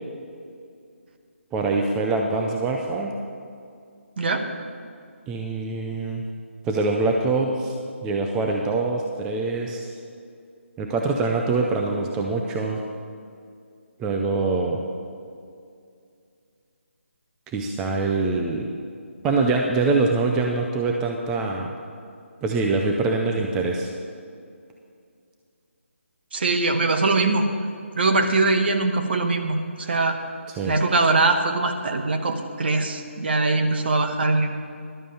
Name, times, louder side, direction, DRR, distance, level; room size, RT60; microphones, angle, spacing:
voice 1, 1.5-3.1 5.3-6.2 6.6-7.7 8.0-9.9 10.8-12.8 14.0-14.8 17.5-18.7 19.2-21.7 22.4-23.9 30.6-30.7, right 3 dB, 10° right, 1 dB, 0.4 m, -24 dB
voice 2, 4.2-4.5 26.3-27.5 27.9-30.2 30.6-34.5, right 3 dB, 50° right, 6 dB, 1.1 m, -22 dB
11.5 x 7.3 x 6.9 m, 2.4 s
figure-of-eight pair, 160°, 7 cm